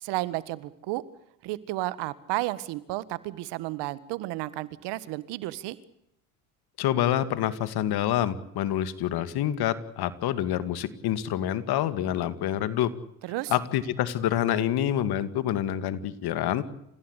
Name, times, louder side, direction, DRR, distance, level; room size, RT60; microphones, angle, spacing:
voice 1, 0.0-1.0 1.4-5.8 13.2-13.5, right 17 dB, 75° right, 16 dB, 1.7 m, -32 dB
voice 2, 6.8-12.9 13.5-16.6, left 11 dB, 65° left, 13 dB, 2.3 m, -27 dB
29.5 x 16.5 x 8.3 m, 0.82 s
supercardioid pair, 85°, 42 cm